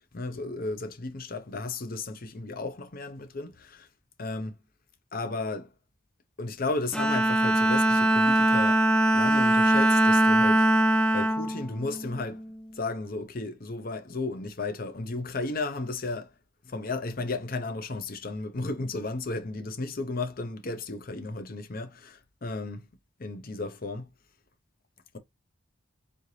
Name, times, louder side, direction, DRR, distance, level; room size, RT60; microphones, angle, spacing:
voice 1, 0.1-3.9 4.2-4.6 5.1-5.7 6.4-8.8 9.1-10.7 11.1-12.4 12.8-16.3 16.6-22.9 23.2-24.1, left 3 dB, 45° left, 0.7 m, -34 dB
Bowed string instrument, 6.9-12.5, right 1 dB, 5° left, 0.4 m, -22 dB
4.3 x 2.8 x 3.2 m
head